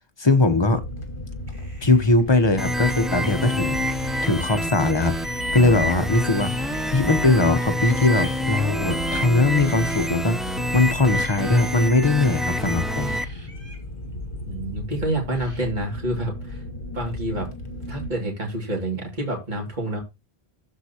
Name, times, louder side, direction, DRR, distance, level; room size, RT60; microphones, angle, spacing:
voice 1, 0.2-0.8 1.8-3.9 4.2-6.5 6.9-13.2, left 2 dB, 25° left, 0.8 m, -20 dB
sound 1, 0.7-18.1, left 1 dB, 55° left, 1.5 m, -35 dB
sound 2, 1.4-2.2 3.6-4.6 4.9-5.9 6.3-7.1 7.8-8.4 9.5-10.1 11.0-11.7 12.4-13.8 15.3-15.7, right 1 dB, 80° right, 3.0 m, -48 dB
sound 3, 2.6-13.2, equal, ahead, 0.3 m, -27 dB
voice 2, 14.4-16.6 16.9-17.5 17.9-20.0, right 1 dB, 45° right, 2.5 m, -28 dB
13.0 x 4.6 x 2.8 m
omnidirectional pair, 1.1 m